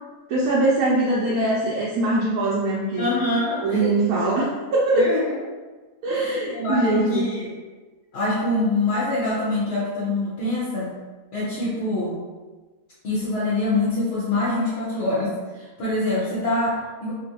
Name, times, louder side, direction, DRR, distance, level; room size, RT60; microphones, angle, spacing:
voice 1, 0.3-3.1 3.6-5.2 6.0-7.3, right 2 dB, 80° right, -5 dB, 1.1 m, -22 dB
voice 2, 3.0-3.9 4.9-5.4 6.1-7.5 8.1-10.9 11.3-12.2 13.0-17.1, left 2 dB, 55° left, -8 dB, 0.8 m, -25 dB
2.9 x 2.5 x 2.8 m, 1.3 s
omnidirectional pair, 1.6 m